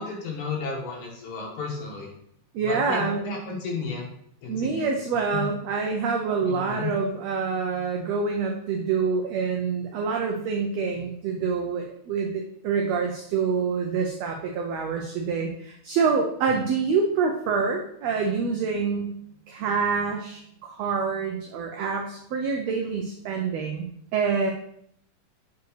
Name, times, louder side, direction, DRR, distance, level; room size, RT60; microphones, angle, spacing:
voice 1, 0.0-2.1 2.7-4.1 4.4-4.9 5.3-5.4 6.4-6.9 16.5-16.6, left 4 dB, 70° left, -1 dB, 2.6 m, -33 dB
voice 2, 2.5-3.4 4.5-19.1 19.5-24.5, right 5 dB, 80° right, 2 dB, 1.5 m, -26 dB
8.1 x 4.6 x 3.2 m, 0.69 s
omnidirectional pair, 3.7 m